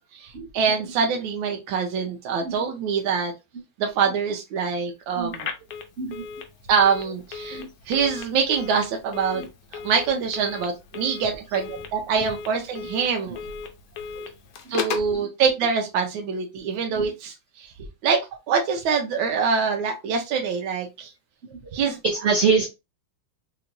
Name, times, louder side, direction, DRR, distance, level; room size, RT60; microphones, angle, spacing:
voice 1, 0.1-3.3 3.8-5.5 6.7-9.4 9.8-13.4 14.7-17.7 18.0-18.2 18.5-21.1 21.7-22.0, right 6 dB, 90° right, 3 dB, 1.4 m, -24 dB
Telephone, 5.3-15.2, left 6 dB, 65° left, 1.0 m, -36 dB
voice 2, 22.0-22.7, right 5 dB, 75° right, 0 dB, 0.6 m, -24 dB
3.3 x 2.9 x 2.5 m, 0.25 s
omnidirectional pair, 2.0 m